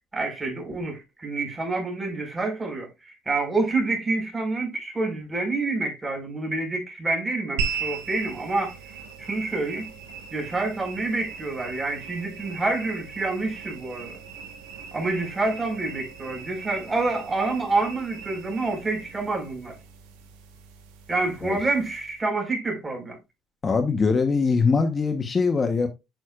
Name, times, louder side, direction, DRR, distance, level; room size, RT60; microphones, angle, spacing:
voice 1, 0.1-9.9 10.3-14.2 14.9-19.8 21.1-23.2, right 3 dB, 20° right, 4.9 m, -28 dB
sound 1, 7.6-22.2, right 6 dB, 90° right, 2.7 m, -38 dB
voice 2, 23.6-25.9, left 4 dB, 30° left, 1.1 m, -22 dB
9.1 x 6.3 x 2.5 m
supercardioid pair, 90°, 0 cm